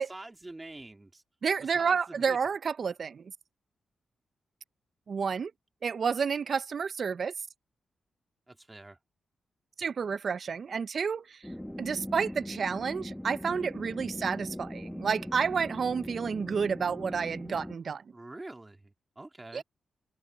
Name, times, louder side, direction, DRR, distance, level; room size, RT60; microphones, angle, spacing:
voice 1, 0.0-1.2 1.6-2.4 8.5-9.0 18.1-19.6, right 2 dB, 20° right, 2.7 m, -46 dB
voice 2, 1.4-3.2 5.1-5.5 5.8-7.3 9.8-11.4 11.8-18.0 19.5-19.6, right 6 dB, 55° right, 0.5 m, -30 dB
sound 1, 11.4-17.7, equal, 5° left, 1.6 m, -40 dB
cardioid pair, 75°, 0 cm